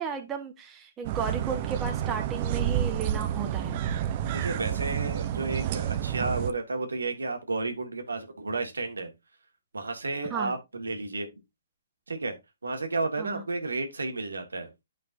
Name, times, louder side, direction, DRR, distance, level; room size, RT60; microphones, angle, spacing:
voice 1, 0.0-3.8 10.3-10.5 13.2-13.4, right 6 dB, 15° right, 1.3 m, -34 dB
sound 1, 1.0-6.5, right 10 dB, 40° right, 0.7 m, -29 dB
voice 2, 4.3-9.1 9.7-11.3 12.1-12.3 12.6-14.8, right 3 dB, 90° right, 1.7 m, -32 dB
9.3 x 5.2 x 2.6 m
hypercardioid pair, 140°, 0 cm